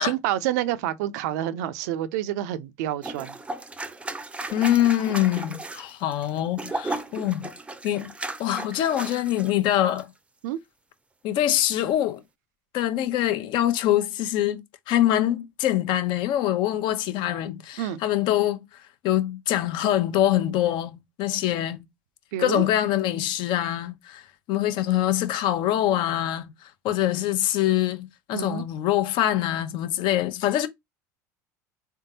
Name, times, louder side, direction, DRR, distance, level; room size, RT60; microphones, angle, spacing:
voice 1, 0.0-3.4 10.4-10.6 17.8-18.0 22.3-22.6 28.3-28.6, right 12 dB, 75° right, 0.5 m, -28 dB
sound 1, 3.0-9.5 9.8-10.0, right 2 dB, 15° right, 0.6 m, -35 dB
voice 2, 4.5-7.5 7.8-8.1 8.4-10.1 11.2-12.2 12.7-21.8 22.4-30.7, left 12 dB, 60° left, 0.7 m, -24 dB
3.5 x 3.5 x 2.7 m
hypercardioid pair, 85°, 9 cm